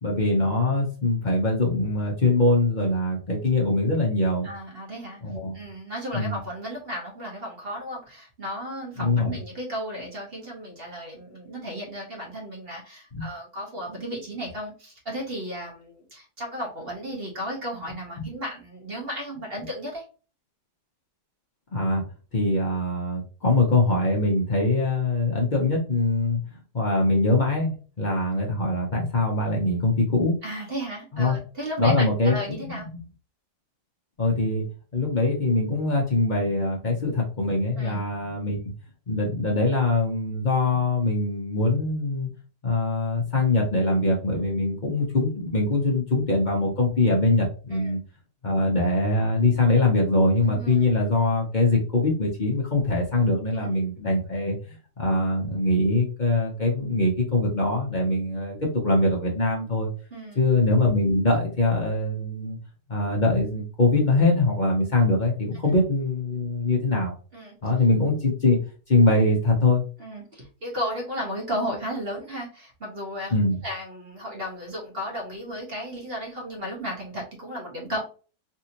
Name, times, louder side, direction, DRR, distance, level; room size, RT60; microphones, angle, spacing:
voice 1, 0.0-4.5 5.2-5.6 6.1-6.4 9.0-9.4 13.1-13.2 18.2-18.3 21.7-22.0 22.3-26.4 26.7-30.3 31.1-31.4 31.8-32.7 34.2-34.6 34.9-38.6 39.1-42.3 42.6-48.0 48.4-54.6 55.0-58.6 58.8-59.9 60.4-62.6 62.9-67.2 67.6-68.6 68.9-69.8 73.3-73.6, left 2 dB, 40° left, -2 dB, 0.7 m, -23 dB
voice 2, 4.4-5.2 5.5-20.0 28.3-28.5 30.4-32.9 37.8-38.0 47.7-47.9 50.4-50.9 53.5-53.7 60.1-60.4 67.3-67.6 70.0-73.3 73.6-78.1, equal, 40° right, -2 dB, 1.1 m, -34 dB
3.4 x 2.7 x 2.8 m, 0.36 s
omnidirectional pair, 1.9 m